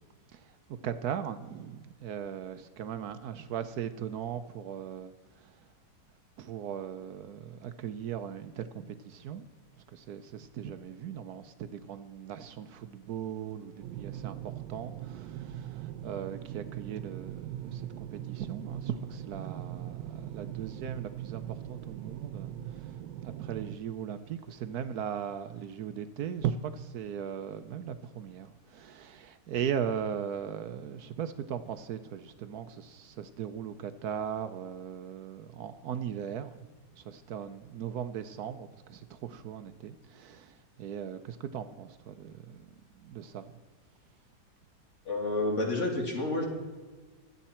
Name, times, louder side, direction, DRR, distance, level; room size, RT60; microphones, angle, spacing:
voice 1, 0.3-5.7 6.4-9.5 9.9-43.5, right 8 dB, 65° right, 1.1 m, -38 dB
sound 1, 13.8-23.7, right 12 dB, 90° right, 1.3 m, -41 dB
voice 2, 45.0-46.5, left 2 dB, 40° left, 2.8 m, -29 dB
23.5 x 8.2 x 4.4 m
omnidirectional pair, 1.9 m